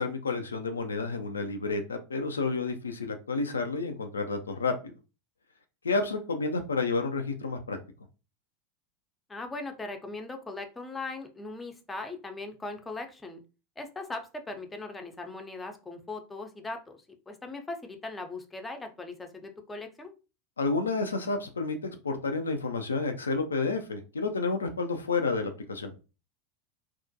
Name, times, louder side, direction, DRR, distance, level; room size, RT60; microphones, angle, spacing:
voice 1, 0.0-4.9 5.8-7.8 20.6-25.9, left 3 dB, 80° left, 6 dB, 0.3 m, -30 dB
voice 2, 9.3-13.4 13.8-20.1, left 2 dB, 15° left, 4 dB, 0.5 m, -39 dB
2.3 x 2.1 x 2.6 m, 0.31 s
figure-of-eight pair, 85°, 0 cm